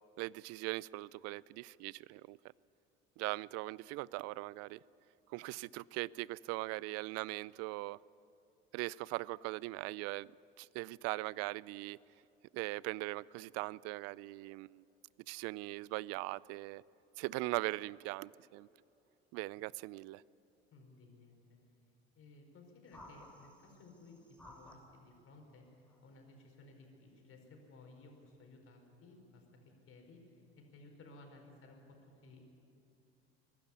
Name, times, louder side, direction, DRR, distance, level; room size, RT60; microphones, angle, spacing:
voice 1, 0.2-2.4 3.2-4.8 5.3-8.0 8.7-10.3 10.6-12.0 12.5-14.8 15.3-16.8 17.2-18.7 19.3-20.2, right 21 dB, 55° right, 0.4 m, -40 dB
voice 2, 20.7-21.4 22.1-24.2 24.4-29.4 29.9-32.4, left 2 dB, 45° left, 4.6 m, -58 dB
sound 1, 22.9-25.0 25.9-26.2, left 1 dB, 5° left, 3.2 m, -57 dB
22.0 x 12.0 x 9.7 m
hypercardioid pair, 65°, 31 cm